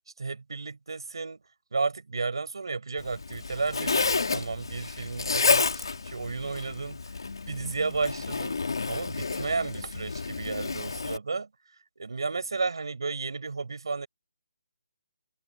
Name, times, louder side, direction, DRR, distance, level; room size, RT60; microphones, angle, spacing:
voice 1, 0.2-1.4 1.7-7.0 7.5-11.5 12.0-14.1, right 4 dB, 80° right, 7.2 m, -33 dB
Zipper (clothing), 3.0-11.2, left 4 dB, 80° left, 3.8 m, -30 dB
hypercardioid pair, 170°, 2 cm